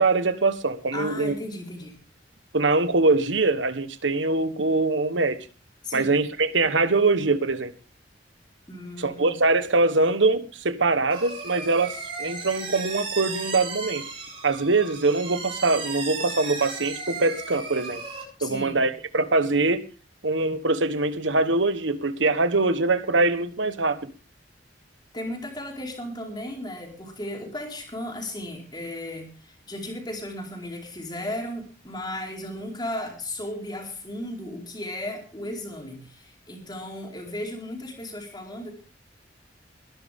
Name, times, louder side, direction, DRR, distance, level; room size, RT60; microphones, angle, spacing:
voice 1, 0.0-1.4 2.5-5.5 5.9-7.7 9.0-14.0 14.4-18.0 18.4-19.9 20.2-24.1, right 3 dB, 90° right, 11 dB, 1.3 m, -23 dB
voice 2, 0.9-2.0 5.8-6.2 8.7-9.4 18.4-18.8 25.1-38.7, left 1 dB, 25° left, 1 dB, 4.5 m, -35 dB
sound 1, 11.1-18.2, right 4 dB, 30° right, 7.7 m, -35 dB
22.0 x 11.0 x 3.6 m, 0.36 s
head